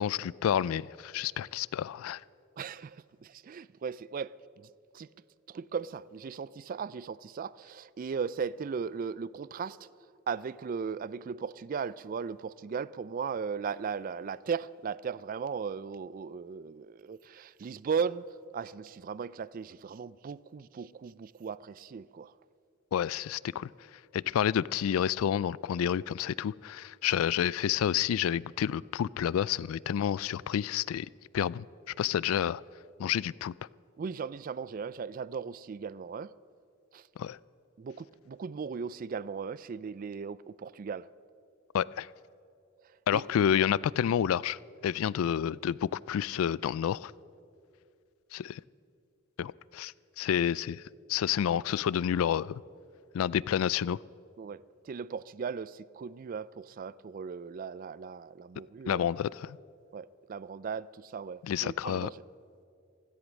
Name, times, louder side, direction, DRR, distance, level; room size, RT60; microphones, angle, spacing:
voice 1, 0.0-2.2 22.9-23.7 24.1-31.1 31.3-31.7 32.0-32.6 33.0-33.5 37.2-37.4 41.7-42.1 43.1-44.6 44.8-47.1 48.3-48.6 49.4-50.8 51.1-52.6 53.1-54.0 58.9-59.6 61.4-62.1, left 9 dB, 80° left, 0.3 m, -29 dB
voice 2, 2.6-5.1 5.5-9.8 10.3-18.2 18.5-22.3 34.0-36.3 36.9-37.0 37.8-41.1 43.1-43.2 54.4-59.1 59.9-62.2, right 6 dB, 40° right, 0.3 m, -37 dB
16.5 x 14.0 x 6.3 m
head